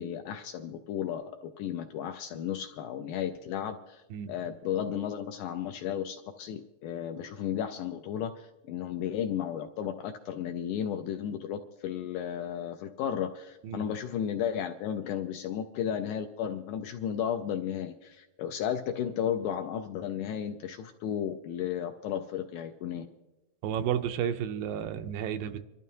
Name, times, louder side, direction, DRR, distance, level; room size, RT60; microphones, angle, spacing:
voice 1, 0.0-23.1, left 9 dB, 80° left, 6 dB, 1.8 m, -34 dB
voice 2, 23.6-25.6, right 9 dB, 85° right, 9 dB, 2.3 m, -32 dB
26.5 x 12.5 x 2.7 m, 1.1 s
omnidirectional pair, 4.0 m